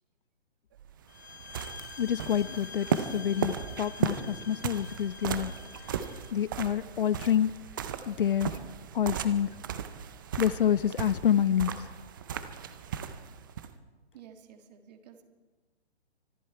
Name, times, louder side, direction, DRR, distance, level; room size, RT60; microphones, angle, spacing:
sound 1, 0.8-13.7, right 8 dB, 20° right, 0.5 m, -36 dB
sound 2, 1.1-6.3, left 5 dB, 75° left, 1.6 m, -47 dB
voice 1, 2.0-5.5 6.3-7.6 8.1-8.6 8.9-9.5 10.4-11.9, left 9 dB, 55° left, 19 dB, 0.5 m, -27 dB
voice 2, 14.1-15.2, right 8 dB, 40° right, 6 dB, 1.7 m, -52 dB
24.5 x 11.5 x 4.5 m, 1.3 s
figure-of-eight pair, 140°, 33 cm